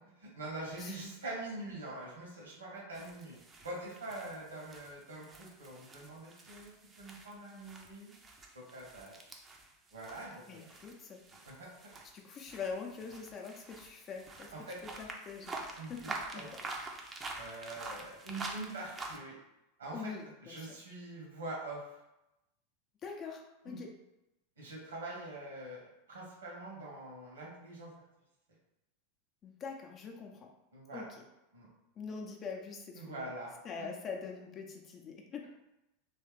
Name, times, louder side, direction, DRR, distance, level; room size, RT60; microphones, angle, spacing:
voice 1, 0.0-6.7 7.0-8.1 8.5-9.2 9.9-10.6 11.4-11.7 14.5-14.8 15.8-16.1 16.3-16.5 17.4-19.4 19.8-20.1 20.4-22.0 23.6-23.8 24.6-27.9 30.7-31.1 31.5-31.7 32.9-34.0, right 2 dB, 75° right, -3 dB, 1.5 m, -44 dB
sound 1, 2.9-19.2, right 3 dB, 25° right, 0.6 m, -47 dB
voice 2, 10.5-11.2 12.1-14.5 14.8-16.6 19.9-20.7 23.0-23.9 29.4-30.5 30.9-31.2 32.0-33.3 33.6-35.5, left 5 dB, 35° left, 1 dB, 0.7 m, -44 dB
3.2 x 3.2 x 3.2 m, 0.94 s
figure-of-eight pair, 85°, 0 cm